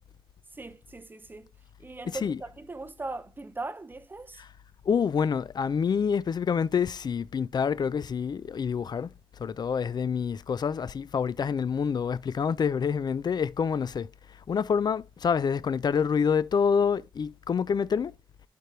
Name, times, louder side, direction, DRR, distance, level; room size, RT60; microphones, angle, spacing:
voice 1, 0.5-1.5 1.8-4.4, right 3 dB, 20° right, 0.5 m, -39 dB
voice 2, 2.1-2.4 4.9-9.1 9.4-14.1 14.5-18.1, left 6 dB, 50° left, 0.4 m, -27 dB
11.0 x 5.1 x 3.1 m
wide cardioid pair, 155°, 9 cm